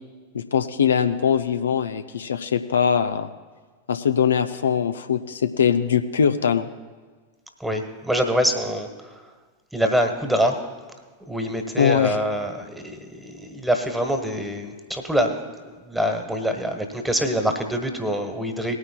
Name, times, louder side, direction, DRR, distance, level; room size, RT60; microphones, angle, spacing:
voice 1, 0.3-3.3 3.9-6.7 11.8-12.2, left 7 dB, 70° left, 9 dB, 0.4 m, -21 dB
voice 2, 7.6-9.3 9.7-10.6 11.2-15.4 15.6-18.8, equal, 5° right, 5 dB, 1.3 m, -25 dB
20.5 x 9.6 x 2.2 m, 1.4 s
figure-of-eight pair, 90°, 0 cm